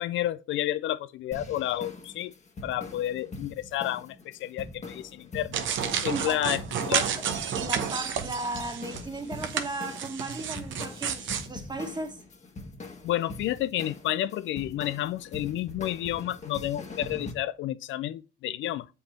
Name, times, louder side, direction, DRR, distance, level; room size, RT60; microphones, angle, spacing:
voice 1, 0.0-2.3 2.6-5.6 6.0-7.0 13.0-18.9, left 13 dB, 75° left, 0.4 m, -30 dB
sound 1, 1.3-17.3, left 2 dB, 35° left, 1.5 m, -43 dB
sound 2, 5.5-9.0 9.4-11.5, right 8 dB, 75° right, 1.0 m, -31 dB
voice 2, 6.1-6.5 6.8-7.2 7.5-12.2, right 2 dB, 20° right, 1.5 m, -36 dB
7.3 x 5.4 x 4.3 m
cardioid pair, 90°, 20 cm